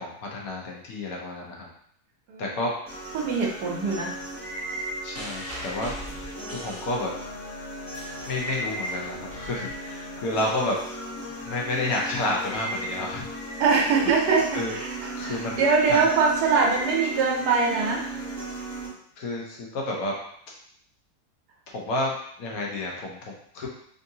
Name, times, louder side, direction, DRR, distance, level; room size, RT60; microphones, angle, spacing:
voice 1, 0.0-1.7 2.4-2.7 5.0-5.9 6.2-7.1 8.3-10.8 11.4-13.3 14.5-14.8 15.2-15.6 15.9-16.1 19.2-20.2 21.7-23.7, left 2 dB, 65° left, -1 dB, 1.2 m, -30 dB
sound 1, 2.9-18.9, right 1 dB, 5° left, 1.3 m, -35 dB
voice 2, 3.1-4.1 13.6-18.5, right 4 dB, 85° right, -2 dB, 1.3 m, -23 dB
sound 2, 5.1-7.4 7.7-10.3 11.2-11.3, equal, 20° right, 0.4 m, -41 dB
3.6 x 2.6 x 2.7 m, 0.65 s
omnidirectional pair, 1.7 m